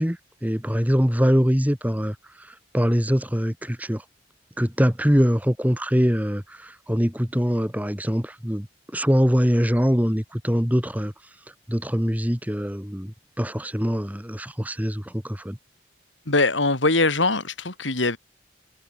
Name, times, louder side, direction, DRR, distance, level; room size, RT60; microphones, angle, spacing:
voice 1, 0.0-4.0 4.6-8.7 8.9-11.1 11.7-15.6, equal, 10° right, 3.2 m, -23 dB
voice 2, 16.3-18.2, left 3 dB, 90° left, 4.5 m, -22 dB
head